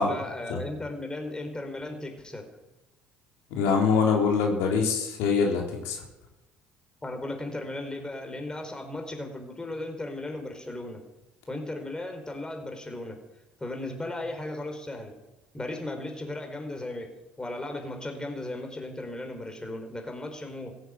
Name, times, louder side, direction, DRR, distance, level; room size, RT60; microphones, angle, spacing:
voice 1, 0.0-2.5 7.0-11.0 11.5-13.2 13.6-15.1 15.5-17.1 17.4-20.8, left 2 dB, 15° left, 4 dB, 4.5 m, -36 dB
voice 2, 3.5-6.0, left 5 dB, 80° left, 1 dB, 3.8 m, -24 dB
16.0 x 9.6 x 9.0 m, 0.98 s
supercardioid pair, 80°, 5 cm